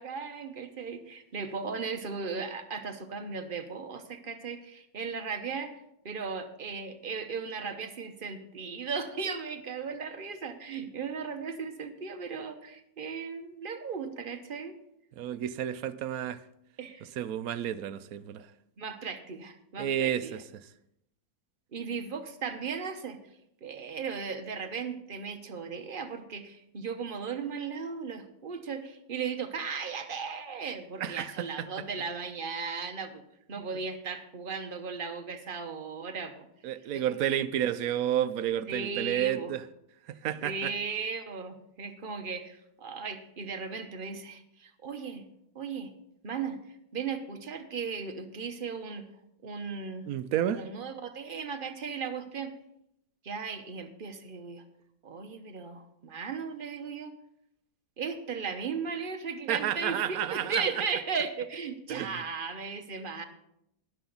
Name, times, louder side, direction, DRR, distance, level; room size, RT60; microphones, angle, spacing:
voice 1, 0.0-5.7 6.0-14.7 16.8-17.1 18.8-20.4 21.7-23.2 23.6-33.2 33.5-36.5 36.9-37.0 37.3-37.5 38.7-39.5 40.4-45.3 45.5-45.9 46.2-46.6 46.9-49.1 49.4-50.1 50.5-52.5 53.2-54.6 55.0-57.1 58.0-63.2, right 5 dB, 40° right, 1.0 m, -36 dB
voice 2, 15.2-16.4 17.2-18.5 19.8-20.4 31.0-31.8 36.6-39.6 40.1-40.7 50.1-50.7 59.5-60.8 61.9-62.2, right 10 dB, 75° right, 1.0 m, -31 dB
12.5 x 10.5 x 3.9 m
omnidirectional pair, 1.6 m